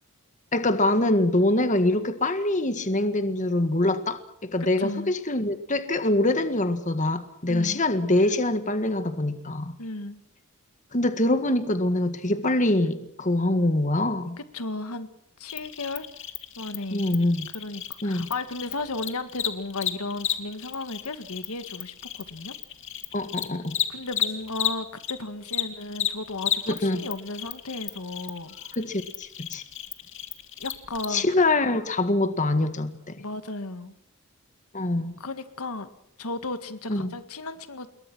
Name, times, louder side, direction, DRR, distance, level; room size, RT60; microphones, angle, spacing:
voice 1, 0.5-9.7 10.9-14.4 16.9-17.5 18.0-18.3 23.1-23.7 26.7-27.0 28.7-29.6 31.1-33.2 34.7-35.1 36.9-37.1, left 2 dB, 35° left, 9 dB, 1.7 m, -24 dB
voice 2, 4.8-5.1 7.5-7.8 9.8-10.2 14.5-15.1 15.4-16.1 16.6-17.1 17.5-22.5 23.9-28.6 30.6-31.3 33.2-33.9 35.2-35.9 36.2-37.9, left 2 dB, 85° left, 10 dB, 1.9 m, -34 dB
Cricket, 15.5-25.1 25.4-31.0, left 10 dB, 60° left, 2.5 m, -32 dB
27.5 x 22.0 x 6.2 m, 0.72 s
head